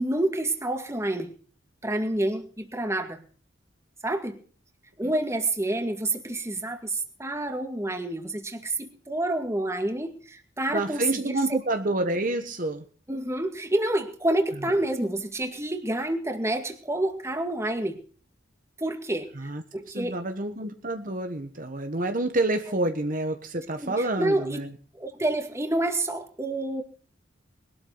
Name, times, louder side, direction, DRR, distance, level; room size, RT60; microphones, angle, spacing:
voice 1, 0.0-1.3 1.8-3.2 4.0-4.4 5.0-11.4 13.1-18.0 18.8-20.2 23.8-24.6 24.9-26.8, right 1 dB, 15° right, 5 dB, 2.1 m, -28 dB
voice 2, 10.7-12.8 19.3-19.6 19.9-24.7, right 2 dB, 45° right, 6 dB, 1.4 m, -28 dB
21.5 x 12.5 x 4.1 m, 0.41 s
head